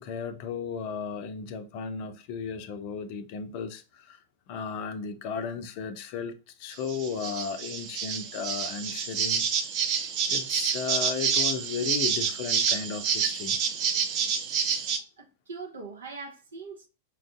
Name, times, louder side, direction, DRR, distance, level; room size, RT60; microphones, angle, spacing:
voice 1, 0.0-4.2 4.5-9.4 10.3-13.6, left 6 dB, 45° left, 0.5 m, -35 dB
sound 1, 6.7-15.0, right 7 dB, 40° right, 0.6 m, -28 dB
voice 2, 15.2-16.9, right 4 dB, 70° right, 1.0 m, -41 dB
5.1 x 2.5 x 2.3 m
figure-of-eight pair, 95°, 0 cm